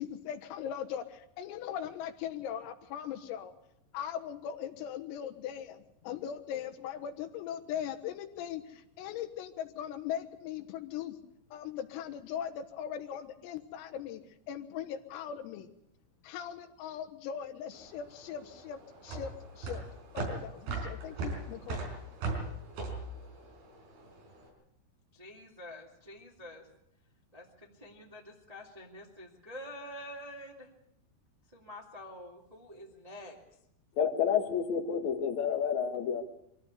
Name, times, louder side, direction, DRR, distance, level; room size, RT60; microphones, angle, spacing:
voice 1, 0.0-3.5 3.9-11.2 11.5-14.2 14.5-15.7 16.2-19.8 20.1-21.9, left 9 dB, 85° left, 6 dB, 4.0 m, -39 dB
sound 1, 17.7-24.3, right 3 dB, 50° right, 6.2 m, -38 dB
voice 2, 25.1-26.7 27.3-30.7 31.5-33.4, left 1 dB, 80° right, -1 dB, 0.3 m, -47 dB
voice 3, 34.0-36.2, left 7 dB, 70° left, 4 dB, 1.7 m, -29 dB
24.0 x 14.5 x 8.3 m, 0.80 s
omnidirectional pair, 5.9 m